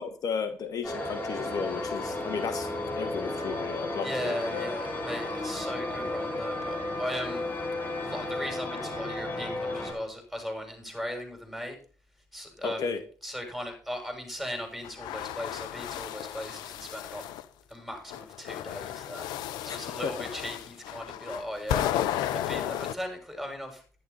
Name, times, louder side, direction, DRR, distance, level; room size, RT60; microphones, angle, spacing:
voice 1, 0.0-2.7 3.0-4.7 12.6-13.0 19.7-19.8 20.0-20.3, left 6 dB, 60° left, 9 dB, 1.3 m, -34 dB
sound 1, 0.8-9.9, left 2 dB, 25° left, 7.6 m, -33 dB
voice 2, 4.0-7.5 8.0-11.8 12.3-17.2 17.7-19.3 19.6-23.8, equal, ahead, 4 dB, 6.9 m, -38 dB
sound 2, 14.8-17.4 18.1-22.9, left 11 dB, 80° left, 0.8 m, -33 dB
11.0 x 11.0 x 4.2 m, 0.40 s
hypercardioid pair, 55°, 7 cm